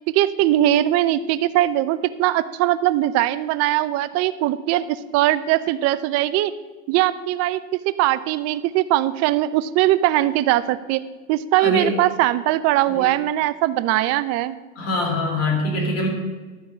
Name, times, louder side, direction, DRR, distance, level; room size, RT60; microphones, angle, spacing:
voice 1, 0.1-6.5 6.9-11.0 11.3-14.6, right 14 dB, 40° right, 14 dB, 0.6 m, -20 dB
voice 2, 11.6-11.9 12.9-13.1 14.8-16.1, left 2 dB, 40° left, 0 dB, 3.9 m, -23 dB
12.5 x 4.7 x 8.2 m, 1.3 s
hypercardioid pair, 105°, 40 cm